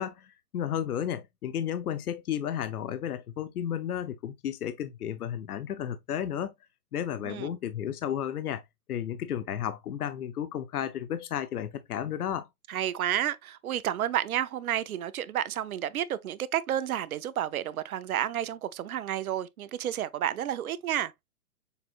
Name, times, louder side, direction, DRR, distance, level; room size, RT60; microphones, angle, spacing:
voice 1, 0.0-6.5 6.9-8.6 8.9-12.5, left 9 dB, 70° left, 0.8 m, -33 dB
voice 2, 12.7-21.1, right 11 dB, 65° right, 0.7 m, -31 dB
6.7 x 3.1 x 2.4 m
hypercardioid pair, 150°, 46 cm